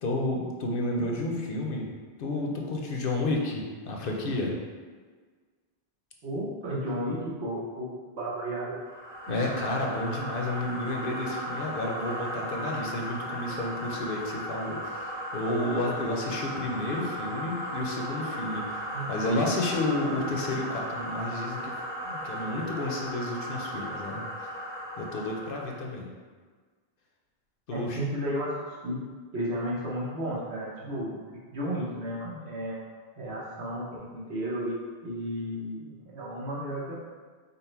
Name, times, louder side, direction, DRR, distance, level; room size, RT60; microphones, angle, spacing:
voice 1, 0.0-1.9 2.2-4.6 9.3-21.7 22.0-24.5 25.0-26.1 27.7-28.0, left 2 dB, 60° left, 0 dB, 0.8 m, -31 dB
voice 2, 6.2-8.8 18.9-19.1 27.7-29.0 29.3-31.2 31.5-32.8 33.2-34.8 35.0-36.9, equal, 75° right, -6 dB, 1.2 m, -33 dB
sound 1, 8.8-25.8, equal, 25° right, 1.1 m, -36 dB
5.3 x 2.1 x 4.3 m, 1.5 s
omnidirectional pair, 1.1 m